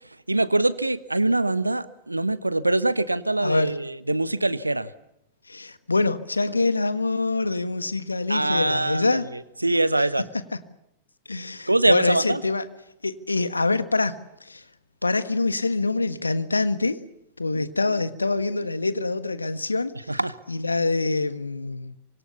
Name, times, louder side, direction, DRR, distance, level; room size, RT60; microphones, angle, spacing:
voice 1, 0.3-4.9 8.3-10.3 11.7-12.4 17.5-18.0 20.1-20.4, right 2 dB, 85° right, 16 dB, 1.1 m, -24 dB
voice 2, 3.4-3.7 5.5-9.3 10.5-10.6 11.3-12.6 13.0-14.6 15.0-17.0 17.4-20.1 20.5-21.9, left 3 dB, 80° left, 12 dB, 1.5 m, -25 dB
27.0 x 25.0 x 7.1 m, 0.82 s
figure-of-eight pair, 90°, 0 cm